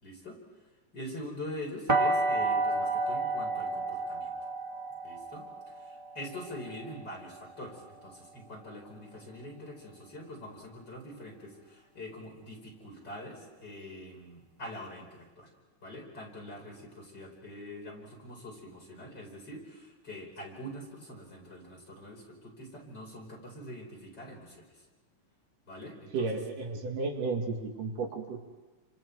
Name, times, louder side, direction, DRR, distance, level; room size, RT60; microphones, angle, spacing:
voice 1, 0.0-0.4 0.9-4.4 5.0-15.5 15.8-24.7 25.7-26.4, left 1 dB, 30° left, -1 dB, 5.4 m, -44 dB
sound 1, 1.9-7.7, right 2 dB, 15° right, 1.5 m, -31 dB
voice 2, 26.1-28.4, right 4 dB, 70° right, 1 dB, 3.6 m, -33 dB
30.0 x 26.0 x 4.7 m, 1.2 s
omnidirectional pair, 3.9 m